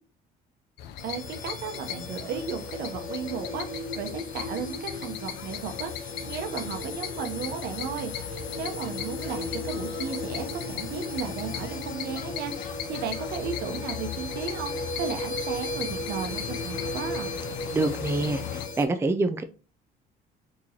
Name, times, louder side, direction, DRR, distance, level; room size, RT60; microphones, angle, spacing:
sound 1, 0.8-18.7, left 9 dB, 80° left, 0.5 m, -38 dB
sound 2, 1.0-18.9, left 2 dB, 50° left, 1.2 m, -36 dB
voice 1, 1.0-17.3, right 6 dB, 75° right, 0.8 m, -35 dB
voice 2, 17.7-19.4, right 2 dB, 15° right, 0.4 m, -26 dB
3.8 x 3.0 x 2.7 m
cardioid pair, 110°, 17 cm